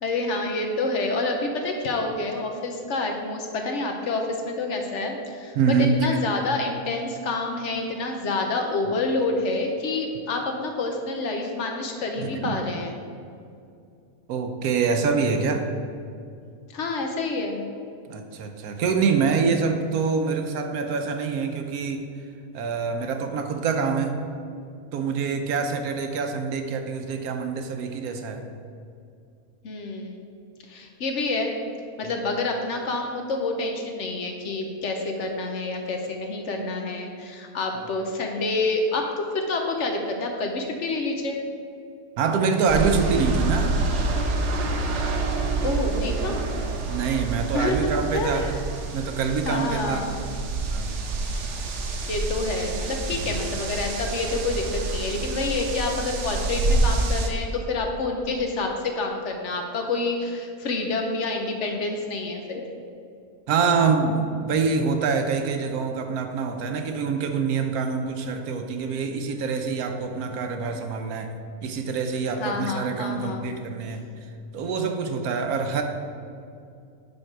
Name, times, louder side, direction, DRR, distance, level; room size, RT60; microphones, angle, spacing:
voice 1, 0.0-13.0 16.7-17.6 29.6-30.3 30.7-31.5 32.0-39.1 39.3-41.4 45.6-46.5 47.5-47.8 48.1-48.5 49.4-50.2 52.1-62.6 72.4-73.4, left 3 dB, 60° left, 3 dB, 1.0 m, -28 dB
voice 2, 5.6-6.0 12.2-12.6 14.3-15.7 18.1-22.1 22.5-24.2 24.9-28.4 32.1-32.3 42.2-43.8 46.9-48.6 48.9-50.1 50.7-51.0 53.3-53.4 63.5-71.4 71.6-74.0 74.5-75.8, right 5 dB, 85° right, 5 dB, 1.2 m, -25 dB
sound 1, 42.7-57.3, right 3 dB, 60° right, 1.0 m, -27 dB
10.5 x 3.6 x 4.5 m, 2.4 s
omnidirectional pair, 1.5 m